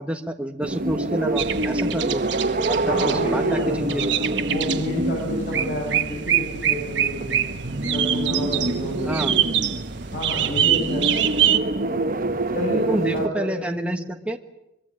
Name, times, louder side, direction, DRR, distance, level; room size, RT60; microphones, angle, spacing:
voice 1, 0.0-2.2 2.7-4.2 9.0-9.4 12.9-14.4, right 1 dB, 5° right, 4 dB, 1.5 m, -28 dB
sound 1, 0.6-13.3, right 2 dB, 45° right, 1.1 m, -27 dB
sound 2, 1.4-11.6, right 10 dB, 65° right, 1.3 m, -25 dB
voice 2, 2.9-7.4 7.9-9.5 10.1-11.1 11.8-12.2 12.5-14.0, equal, 45° left, -2 dB, 7.6 m, -29 dB
24.0 x 23.0 x 8.9 m, 0.88 s
head